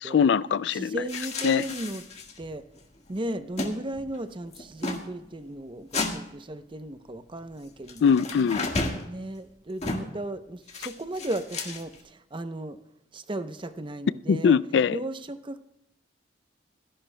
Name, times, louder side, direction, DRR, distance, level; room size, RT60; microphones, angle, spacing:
voice 1, 0.0-1.0 1.4-1.6 8.0-8.7 14.3-15.0, left 6 dB, 75° left, 0.3 m, -22 dB
voice 2, 0.7-2.0 2.4-2.7 3.1-8.3 9.0-12.8 13.1-14.6 14.9-15.6, right 1 dB, 30° right, 0.7 m, -35 dB
sound 1, 1.1-2.5 2.8-2.9 3.1-3.7 4.0-4.2 4.5-5.0 5.9-6.1 7.9-9.0 9.8-10.2 10.7-12.0, left 3 dB, 40° left, 1.6 m, -32 dB
25.0 x 11.0 x 2.2 m
head